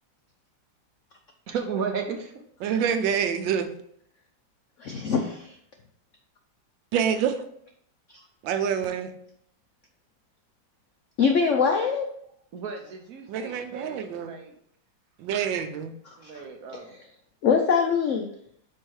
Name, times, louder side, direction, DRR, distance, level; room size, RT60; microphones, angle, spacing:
voice 1, 1.5-2.3 12.5-14.5 15.3-15.4 16.2-17.0, right 6 dB, 60° right, 1.0 m, -34 dB
voice 2, 2.6-3.7 6.9-7.4 8.4-9.1 13.3-14.4 15.2-15.9, right 8 dB, 80° right, 1.4 m, -26 dB
voice 3, 4.8-5.5 11.2-12.1 16.3-16.4 17.4-18.3, left 6 dB, 75° left, 0.7 m, -23 dB
5.4 x 4.7 x 4.6 m
omnidirectional pair, 2.0 m